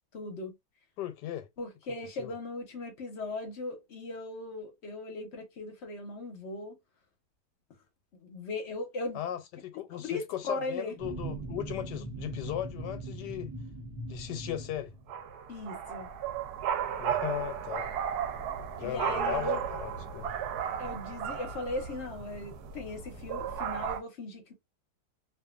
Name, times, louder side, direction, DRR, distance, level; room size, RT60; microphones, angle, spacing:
voice 1, 0.1-0.5 1.6-6.8 8.2-9.2 9.9-10.9 15.5-16.1 18.8-19.6 20.8-24.5, left 2 dB, 55° left, 0.8 m, -38 dB
voice 2, 1.0-1.5 2.2-2.3 9.1-13.5 14.1-14.9 17.0-17.9 18.7-20.3, left 12 dB, 85° left, 1.2 m, -37 dB
sound 1, 11.0-15.3, right 2 dB, 35° right, 0.8 m, -40 dB
sound 2, 15.1-24.0, right 8 dB, 75° right, 1.0 m, -35 dB
2.6 x 2.5 x 2.3 m
omnidirectional pair, 1.8 m